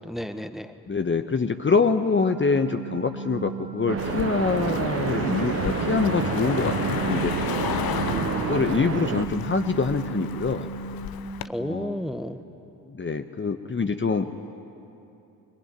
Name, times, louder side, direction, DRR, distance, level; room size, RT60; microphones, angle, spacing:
voice 1, 0.0-0.7 8.1-8.6 11.4-12.4, equal, ahead, 10 dB, 1.4 m, -32 dB
voice 2, 0.9-7.3 8.4-10.7 11.6-12.0 12.9-14.3, left 4 dB, 25° left, 7 dB, 1.1 m, -25 dB
sound 1, 2.2-11.1, right 5 dB, 80° right, 3.5 m, -36 dB
sound 2, 3.9-9.3, right 8 dB, 30° right, 0.7 m, -29 dB
Car passing by, 4.0-11.5, left 12 dB, 50° left, 0.9 m, -33 dB
22.0 x 22.0 x 9.3 m, 2.8 s
figure-of-eight pair, 40°, 48 cm